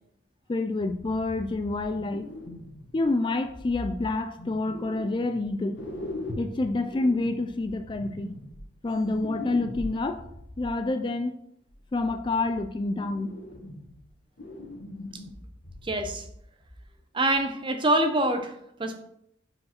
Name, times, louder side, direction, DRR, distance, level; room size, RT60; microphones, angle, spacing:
voice 1, 0.5-2.3 2.9-5.8 6.4-8.3 8.8-10.2 10.6-11.3 11.9-13.4, left 2 dB, 25° left, 8 dB, 0.3 m, -28 dB
sound 1, 0.8-3.0 3.4-5.4 5.7-10.7 11.7-12.7 13.0-14.1 14.4-16.4 16.6-16.8 17.3-17.4, left 1 dB, 75° left, 1.7 m, -41 dB
voice 2, 15.8-16.3 17.1-18.5 18.8-19.0, right 1 dB, 25° right, 6 dB, 0.8 m, -25 dB
4.9 x 4.7 x 5.9 m, 0.74 s
head